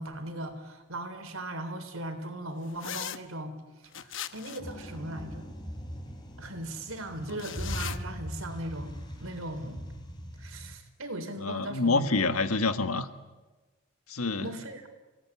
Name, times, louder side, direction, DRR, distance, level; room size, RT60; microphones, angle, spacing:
voice 1, 0.0-3.6 4.0-5.5 6.4-8.9 9.2-9.8 10.4-12.1 14.4-14.9, right 1 dB, 70° right, 7 dB, 3.7 m, -38 dB
sound 1, 2.8-3.2 3.9-4.7 7.3-8.0, left 10 dB, 60° left, 1.0 m, -38 dB
sound 2, 4.6-10.7, equal, 20° left, 3.6 m, -40 dB
voice 2, 11.4-13.1 14.1-14.5, left 3 dB, 85° left, 9 dB, 1.6 m, -27 dB
29.0 x 18.0 x 9.8 m, 1.3 s
head